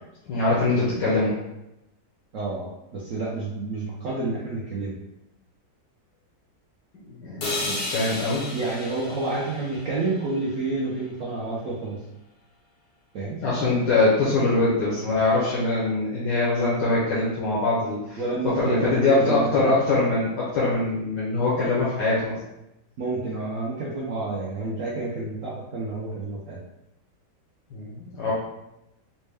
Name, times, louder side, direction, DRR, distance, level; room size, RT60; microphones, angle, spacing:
voice 1, 0.3-1.3 7.1-8.5 13.4-22.4 27.7-28.3, left 2 dB, 85° left, -7 dB, 1.4 m, -23 dB
voice 2, 2.3-2.7 2.9-4.9 8.5-12.0 13.1-13.4 18.2-19.7 23.0-26.6, right 3 dB, 60° right, -5 dB, 0.9 m, -29 dB
sound 1, 7.4-11.4, left 2 dB, 55° left, 0.6 m, -34 dB
4.2 x 2.1 x 3.3 m, 0.90 s
omnidirectional pair, 1.8 m